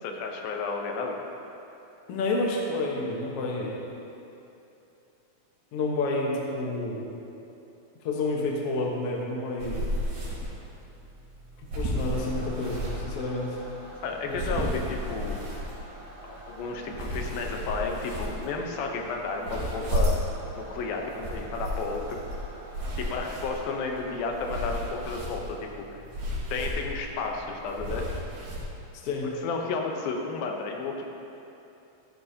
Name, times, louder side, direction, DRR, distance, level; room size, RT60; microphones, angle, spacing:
voice 1, 0.0-1.2 14.0-15.4 16.2-20.2 20.6-22.2 23.0-25.9 26.5-28.1 29.4-31.1, left 4 dB, 85° left, 1 dB, 2.8 m, -32 dB
voice 2, 2.1-3.8 5.7-7.1 8.0-10.0 11.7-13.6 14.3-14.4 29.0-29.3, left 2 dB, 55° left, -2 dB, 1.7 m, -29 dB
sound 1, 9.6-28.6, equal, 65° right, 4.2 m, -34 dB
sound 2, 12.1-24.7, right 1 dB, 85° right, 1.0 m, -47 dB
13.0 x 12.5 x 2.8 m, 2.9 s
omnidirectional pair, 4.1 m